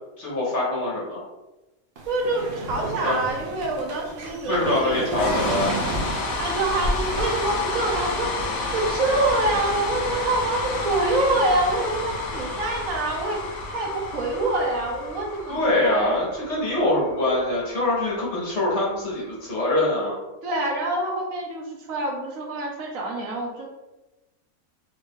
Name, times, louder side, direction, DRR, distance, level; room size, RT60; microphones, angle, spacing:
voice 1, 0.2-1.2 3.0-3.2 4.5-5.8 15.5-20.2, left 2 dB, 55° left, -6 dB, 1.6 m, -24 dB
sound 1, 2.0-7.2, right 2 dB, 50° right, 0.7 m, -31 dB
voice 2, 2.1-5.2 6.4-8.3 8.7-16.2 20.4-23.7, right 2 dB, 70° right, 0 dB, 1.2 m, -26 dB
sound 2, 5.1-19.2, left 2 dB, 75° left, 1.2 m, -30 dB
3.6 x 2.6 x 3.6 m, 1.0 s
omnidirectional pair, 1.5 m